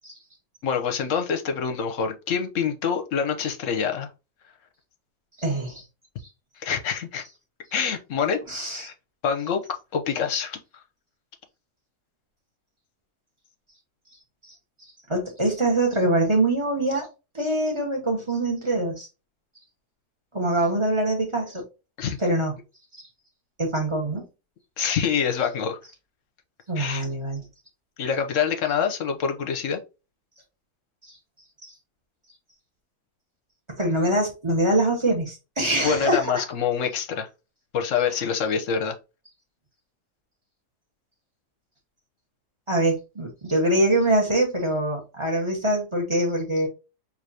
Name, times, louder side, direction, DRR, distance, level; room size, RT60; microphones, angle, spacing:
voice 1, 0.6-4.1 6.6-7.2 7.7-8.4 8.7-8.9 9.2-9.6 9.9-10.6 22.0-22.2 24.8-25.8 26.8-27.0 28.0-29.8 35.8-37.3 37.7-38.9, left 7 dB, 60° left, 1.0 m, -26 dB
voice 2, 5.4-5.8 8.5-8.9 14.5-14.6 15.1-17.1 17.3-19.1 20.3-21.6 22.2-22.5 23.6-24.3 26.7-27.4 31.6-31.7 33.8-36.4 42.7-46.7, right 1 dB, 20° right, 1.2 m, -24 dB
4.9 x 2.9 x 2.7 m
omnidirectional pair, 1.7 m